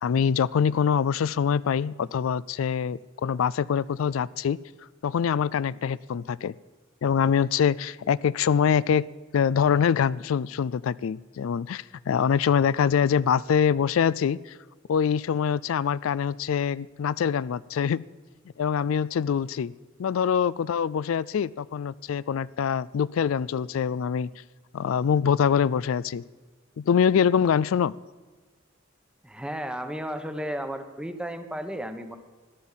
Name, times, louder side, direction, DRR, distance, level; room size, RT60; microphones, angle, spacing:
voice 1, 0.0-4.6 5.0-6.5 7.0-9.1 9.3-14.6 14.9-18.0 18.6-19.7 20.0-24.3 24.7-26.2 26.8-27.9, left 7 dB, 85° left, 0.4 m, -24 dB
voice 2, 29.2-32.2, equal, 5° right, 0.9 m, -33 dB
14.5 x 10.5 x 7.3 m
head